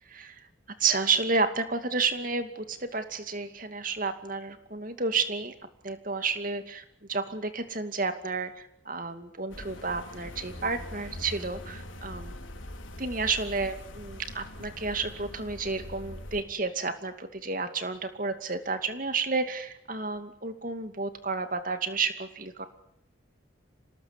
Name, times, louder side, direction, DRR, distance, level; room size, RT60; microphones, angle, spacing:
voice 1, 0.0-0.5 0.8-5.5 5.8-12.4 13.0-22.7, right 4 dB, 45° right, 9 dB, 2.4 m, -31 dB
sound 1, 9.5-16.4, left 1 dB, 75° left, 4.5 m, -42 dB
26.5 x 19.5 x 9.8 m, 0.76 s
head